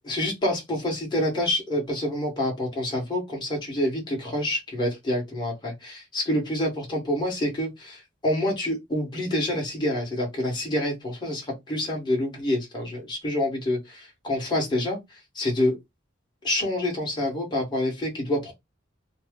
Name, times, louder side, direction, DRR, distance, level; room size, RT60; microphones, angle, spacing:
voice 1, 0.0-15.0 15.3-15.8 16.4-18.5, left 1 dB, 20° left, 1.4 m, -27 dB
3.0 x 2.0 x 3.6 m
head